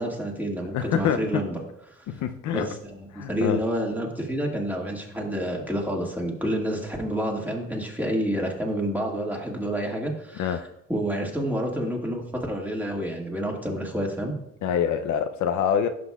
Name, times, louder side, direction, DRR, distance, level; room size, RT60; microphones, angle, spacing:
voice 1, 0.0-1.6 1.9-2.0 2.5-2.6 2.9-14.3, equal, 5° right, -1 dB, 1.9 m, -29 dB
voice 2, 0.7-1.2 2.1-2.7 3.1-3.6 10.4-10.6 14.6-15.9, left 8 dB, 75° left, 8 dB, 0.6 m, -25 dB
11.0 x 6.2 x 2.3 m, 0.78 s
cardioid pair, 90°, 30 cm